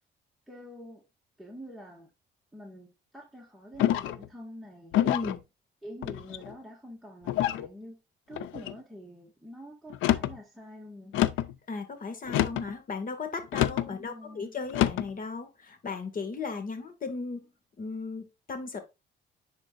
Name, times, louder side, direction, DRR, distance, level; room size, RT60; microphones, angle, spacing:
voice 1, 0.5-1.0 1.4-2.1 2.5-5.0 5.8-8.0 8.3-11.2 14.0-14.6, equal, ahead, 1.8 m, -46 dB
sound 1, 3.8-4.3 4.9-5.4 6.0-6.5 7.3-7.7 8.3-8.8 9.9-10.4 11.1-11.5 12.3-12.7 13.5-13.9 14.7-15.1, left 12 dB, 90° left, 0.5 m, -27 dB
voice 2, 5.0-5.4 11.7-17.5 17.8-18.8, left 4 dB, 45° left, 2.0 m, -36 dB
10.5 x 4.4 x 2.5 m
cardioid pair, 90°, 20 cm